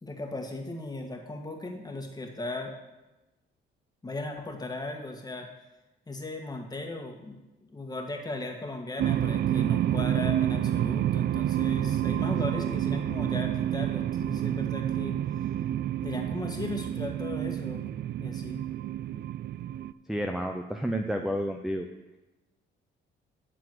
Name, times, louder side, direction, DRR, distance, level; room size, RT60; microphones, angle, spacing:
voice 1, 0.0-2.7 4.0-5.5 6.1-15.2 16.0-17.9 18.2-18.6, left 2 dB, 20° left, 2 dB, 1.7 m, -37 dB
sound 1, 9.0-19.9, right 12 dB, 55° right, 0.4 m, -29 dB
voice 2, 20.1-21.9, equal, ahead, 4 dB, 0.7 m, -30 dB
10.5 x 4.0 x 7.7 m, 1.0 s
cardioid pair, 90°, 20 cm